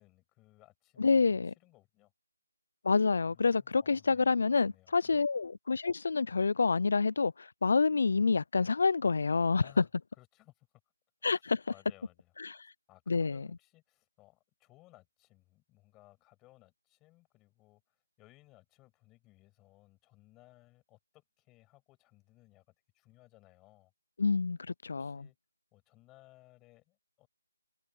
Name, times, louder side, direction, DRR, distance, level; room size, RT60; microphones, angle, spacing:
voice 1, 0.0-2.1 3.2-5.2 9.6-9.9 10.2-10.7 11.3-12.6 12.9-23.9 25.0-25.4 25.7-27.3, left 19 dB, 5° left, 7.3 m, -62 dB
voice 2, 1.0-1.5 2.8-9.8 11.2-11.6 12.4-12.6 13.1-13.5 24.2-25.3, left 4 dB, 40° left, 0.3 m, -28 dB
figure-of-eight pair, 175°, 0 cm